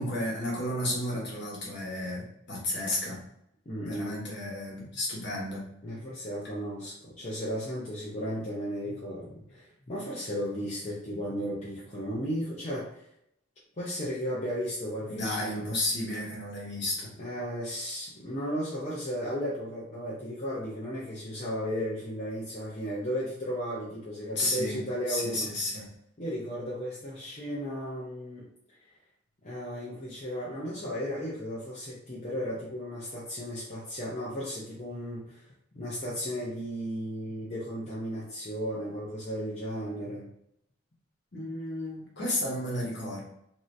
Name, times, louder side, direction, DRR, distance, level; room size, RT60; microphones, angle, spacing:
voice 1, 0.0-3.2 3.8-5.6 15.1-17.1 24.3-24.8 25.1-25.8 41.3-43.2, left 1 dB, 60° left, -4 dB, 1.2 m, -32 dB
voice 2, 3.7-4.3 5.8-13.1 13.8-15.7 17.2-25.5 26.2-28.8 29.4-35.4 35.7-40.3, equal, 35° left, -7 dB, 0.6 m, -35 dB
3.2 x 2.7 x 2.6 m, 0.74 s
head